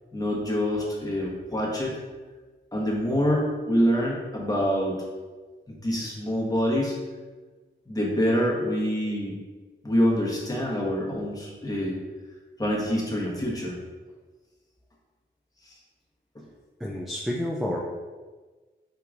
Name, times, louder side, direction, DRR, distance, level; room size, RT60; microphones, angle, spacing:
voice 1, 0.1-2.0 2.7-5.0 5.7-6.9 7.9-9.4 9.8-12.0 12.6-13.8 15.6-15.7 16.3-16.4, equal, 20° left, -4 dB, 1.1 m, -26 dB
voice 2, 16.8-17.8, left 1 dB, ahead, -2 dB, 0.4 m, -29 dB
4.5 x 2.8 x 2.5 m, 1.3 s
cardioid pair, 60°, 20 cm